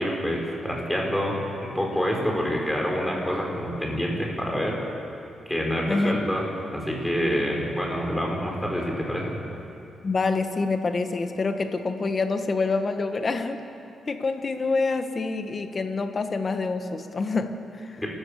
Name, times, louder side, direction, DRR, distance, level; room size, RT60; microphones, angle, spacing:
voice 1, 0.0-1.4 1.6-4.8 5.5-6.4 6.7-9.4 18.0-18.1, equal, 5° left, -1 dB, 5.3 m, -27 dB
voice 2, 5.9-6.2 10.0-13.6 14.1-18.0, left 3 dB, 40° left, 7 dB, 1.6 m, -26 dB
29.5 x 14.5 x 6.8 m, 2.7 s
cardioid pair, 100°, 0 cm